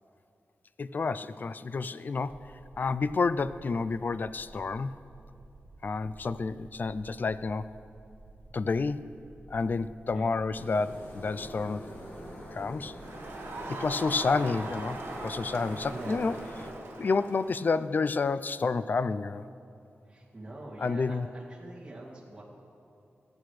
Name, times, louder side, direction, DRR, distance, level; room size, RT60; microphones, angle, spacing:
voice 1, 0.8-4.9 5.8-7.7 8.5-9.2 9.5-11.9 12.5-12.9 13.7-16.4 17.0-19.4 20.8-21.3, left 4 dB, 45° left, 14 dB, 0.3 m, -30 dB
sound 1, 2.3-16.8, right 2 dB, 55° right, 1.0 m, -53 dB
sound 2, 10.5-16.7, equal, 60° left, 3.2 m, -43 dB
Crowd, 13.0-17.8, right 2 dB, 70° right, 1.4 m, -41 dB
voice 2, 15.8-16.2 20.1-22.4, right 2 dB, 20° right, -6 dB, 2.3 m, -44 dB
21.0 x 8.6 x 3.2 m, 2.7 s
wide cardioid pair, 110°, 4 cm